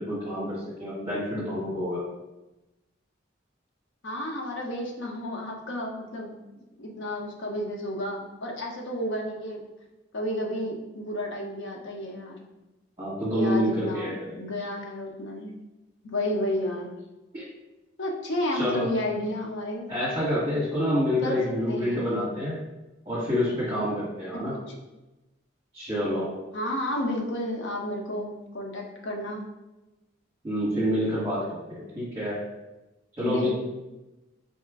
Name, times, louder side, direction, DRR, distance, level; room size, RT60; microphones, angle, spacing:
voice 1, 0.0-2.0 13.0-14.4 17.3-17.4 18.5-18.9 19.9-22.6 23.0-24.6 25.7-26.3 30.4-32.4 33.2-33.5, equal, 20° right, -10 dB, 1.2 m, -27 dB
voice 2, 4.0-6.4 6.8-9.6 10.1-12.4 13.3-15.5 16.0-16.9 18.0-19.9 21.2-22.2 24.7-24.8 26.5-29.4 33.2-33.5, left 1 dB, 65° left, 0 dB, 0.7 m, -31 dB
4.1 x 2.4 x 3.5 m, 1.0 s
head